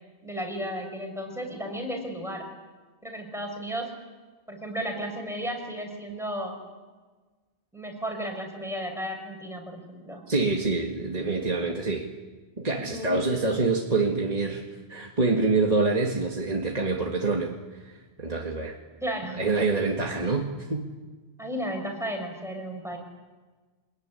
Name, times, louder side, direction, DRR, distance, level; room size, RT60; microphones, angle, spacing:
voice 1, 0.2-2.5 3.0-3.9 4.5-6.6 7.7-10.2 12.7-13.1 19.0-19.5 21.4-23.0, equal, 5° right, 1 dB, 6.1 m, -34 dB
voice 2, 10.3-12.1 12.6-14.6 14.9-17.5 18.2-18.8 19.4-20.9, right 3 dB, 40° right, 0 dB, 2.1 m, -26 dB
26.5 x 21.0 x 9.9 m, 1.3 s
omnidirectional pair, 1.1 m